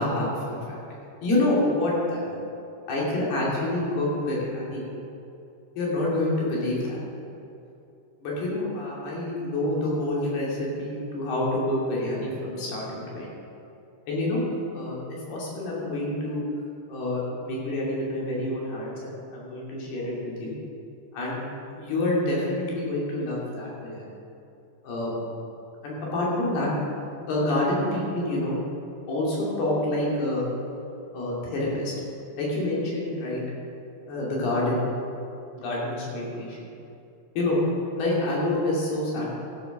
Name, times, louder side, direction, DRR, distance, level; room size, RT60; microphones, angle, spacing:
voice 1, 0.0-0.8 1.2-2.4 2.9-4.9 5.8-7.0 8.2-13.3 14.1-14.4 14.7-15.0 15.3-16.4 16.9-20.5 21.1-21.4 21.7-24.1 24.8-25.1 25.8-26.7 27.3-28.6 29.1-30.4 31.1-31.9 32.4-33.4 34.1-34.9 35.5-36.6 37.4-37.6 37.9-39.4, left 1 dB, 60° left, -5 dB, 4.5 m, -27 dB
13.0 x 8.4 x 6.3 m, 2.7 s
omnidirectional pair, 5.3 m